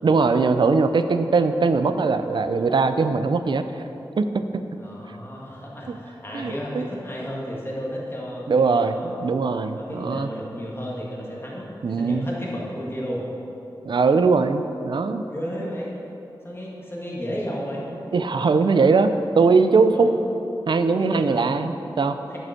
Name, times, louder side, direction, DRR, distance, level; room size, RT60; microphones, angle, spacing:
voice 1, 0.0-3.6 4.2-4.6 5.9-6.0 6.3-6.8 8.5-10.3 11.8-12.3 13.8-15.2 18.1-20.1 20.7-22.2, right 4 dB, 70° right, 9 dB, 0.5 m, -20 dB
voice 2, 4.8-9.1 9.8-13.2 15.3-15.9 16.4-17.9 19.9-20.1 21.0-21.5 22.3-22.4, equal, 30° left, -4 dB, 1.8 m, -33 dB
9.6 x 5.4 x 5.8 m, 3.0 s
wide cardioid pair, 100°, 8 cm